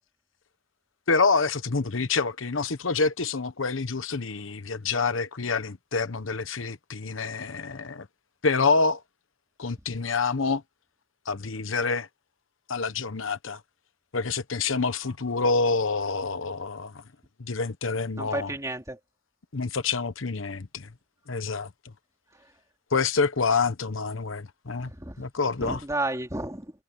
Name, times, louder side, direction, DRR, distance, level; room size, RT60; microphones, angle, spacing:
voice 1, 1.1-8.1 8.4-9.0 9.6-10.6 11.3-12.1 12.7-13.6 14.1-16.9 17.4-18.5 19.5-20.9 21.3-21.7 22.9-24.9 25.2-25.8, left 4 dB, 85° left, 1.1 m, -27 dB
voice 2, 18.2-19.0 24.8-25.2 25.6-26.7, right 2 dB, 15° right, 3.5 m, -32 dB
head